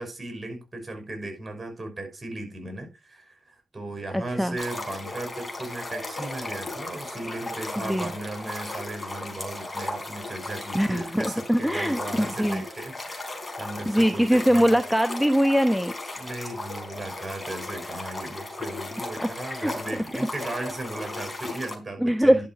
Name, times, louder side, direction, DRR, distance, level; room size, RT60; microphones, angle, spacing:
voice 1, 0.0-14.8 16.2-22.5, right 2 dB, 30° right, 5.7 m, -36 dB
voice 2, 4.1-4.6 7.8-8.1 10.7-12.6 13.9-15.9 18.4-18.5 19.2-19.7 22.0-22.5, equal, ahead, 1.0 m, -22 dB
sound 1, 4.6-21.7, left 2 dB, 25° left, 4.1 m, -36 dB
11.0 x 6.2 x 4.8 m
supercardioid pair, 50°, 0 cm